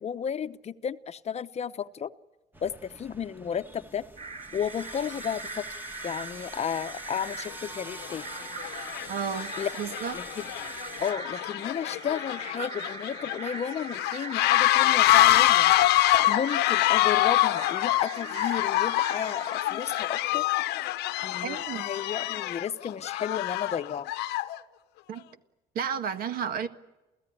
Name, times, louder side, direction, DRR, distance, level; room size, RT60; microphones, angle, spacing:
voice 1, 0.0-2.1 2.6-4.0 4.5-5.6 6.0-8.2 9.6-9.7 10.1-10.5 11.0-15.7 16.3-20.5 21.2-24.1, left 8 dB, 40° left, 0.8 m, -33 dB
sound 1, 2.5-11.1, equal, 10° right, 1.6 m, -45 dB
sound 2, 4.2-20.0, right 4 dB, 40° right, 4.7 m, -41 dB
sound 3, 7.2-7.3 8.0-8.3 8.6-24.6, left 16 dB, 85° left, 1.0 m, -26 dB
voice 2, 9.1-10.2 21.4-21.9 25.1-25.2 25.7-26.7, right 7 dB, 60° right, 1.7 m, -32 dB
29.0 x 16.0 x 10.0 m
cardioid pair, 110°, 17 cm